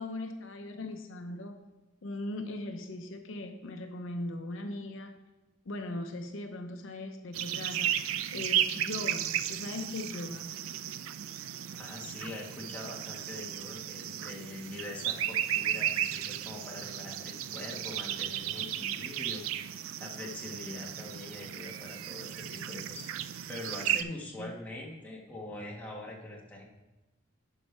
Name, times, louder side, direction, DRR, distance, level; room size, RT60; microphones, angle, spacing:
voice 1, 0.0-1.6 2.0-5.1 5.7-8.0 8.3-10.5 23.9-24.6, left 2 dB, 65° left, 5 dB, 0.6 m, -39 dB
sound 1, 7.3-24.0, right 10 dB, 75° right, 0.3 m, -34 dB
voice 2, 11.7-19.4 20.0-23.0 23.5-26.6, left 2 dB, 10° left, -3 dB, 1.4 m, -43 dB
11.5 x 5.3 x 3.3 m, 1.1 s
head